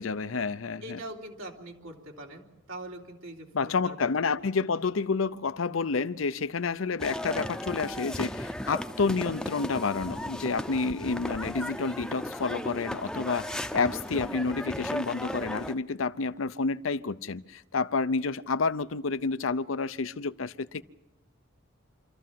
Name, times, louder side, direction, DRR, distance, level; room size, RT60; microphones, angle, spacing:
voice 1, 0.0-1.0 3.5-20.8, left 4 dB, 80° left, 0.7 m, -29 dB
voice 2, 0.8-4.1 4.6-4.7, right 1 dB, 85° right, 3.4 m, -43 dB
sound 1, 7.0-15.8, equal, 5° left, 0.6 m, -36 dB
26.0 x 14.0 x 7.6 m
head